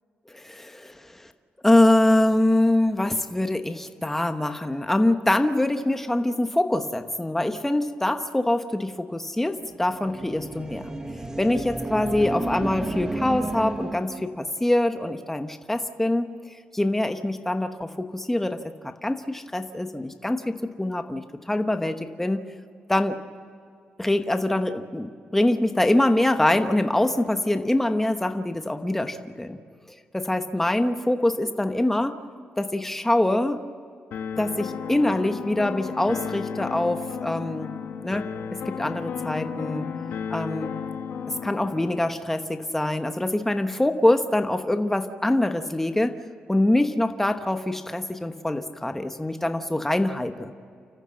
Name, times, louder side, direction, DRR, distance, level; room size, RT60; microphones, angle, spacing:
voice 1, 0.3-1.3 1.6-10.9 11.4-16.3 16.7-18.7 19.0-22.4 22.9-23.2 24.0-29.6 30.1-32.1 32.6-33.6 34.4-37.7 38.0-38.3 38.7-39.9 40.3-40.8 41.4-46.2 46.5-50.5, left 1 dB, 10° left, 7 dB, 1.1 m, -24 dB
sound 1, 9.7-14.3, right 2 dB, 15° right, 1.4 m, -32 dB
sound 2, 34.1-42.1, left 7 dB, 85° left, 1.7 m, -33 dB
29.5 x 14.5 x 7.6 m, 2.3 s
cardioid pair, 115°, 4 cm